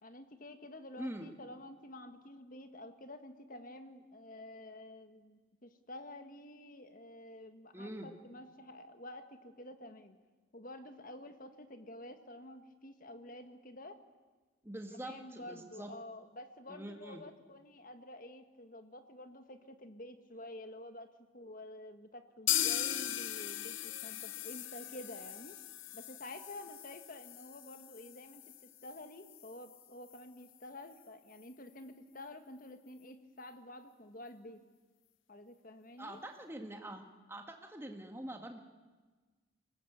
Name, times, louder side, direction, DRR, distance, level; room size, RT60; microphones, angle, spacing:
voice 1, 0.0-10.2 10.5-14.0 14.9-21.1 21.3-25.5 25.9-28.4 28.8-34.6 35.3-36.2, left 1 dB, 40° left, 8 dB, 1.6 m, -50 dB
voice 2, 1.0-1.3 7.7-8.1 14.6-15.9 16.7-17.2 36.0-37.0 37.3-38.6, right 1 dB, 10° right, 4 dB, 1.8 m, -44 dB
sound 1, 22.5-30.2 30.5-30.6 30.9-31.0 31.4-31.5, left 12 dB, 70° left, 0.9 m, -39 dB
23.0 x 19.0 x 8.1 m, 1.4 s
head